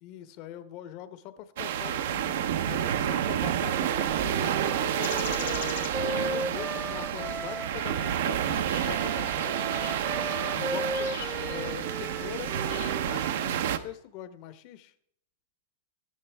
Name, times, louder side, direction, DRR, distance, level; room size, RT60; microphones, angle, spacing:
voice 1, 0.0-5.8 6.1-9.7 10.5-12.6 12.9-14.9, left 11 dB, 45° left, 12 dB, 0.9 m, -42 dB
sound 1, 1.6-13.8, right 10 dB, 65° right, 0.8 m, -29 dB
Wind instrument woodwind instrument, 4.2-8.2 8.8-13.6, equal, 5° left, 0.5 m, -37 dB
sound 2, 5.0-6.3 7.0-7.4 7.8-8.0 8.4-12.9, left 11 dB, 70° left, 2.1 m, -44 dB
13.5 x 10.5 x 3.5 m, 0.72 s
hypercardioid pair, 140°, 0 cm